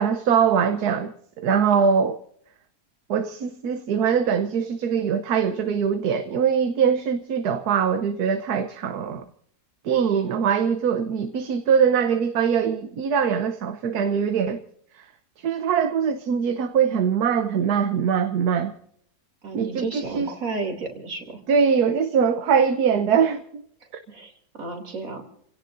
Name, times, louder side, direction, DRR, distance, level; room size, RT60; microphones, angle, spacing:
voice 1, 0.0-2.2 3.1-9.2 9.8-14.6 15.0-15.1 15.4-18.7 19.5-20.3 21.5-23.4, right 7 dB, 75° right, 1.4 m, -22 dB
voice 2, 19.4-21.4 24.1-25.2, right 3 dB, 60° right, 3.4 m, -32 dB
30.0 x 17.0 x 2.6 m
omnidirectional pair, 1.7 m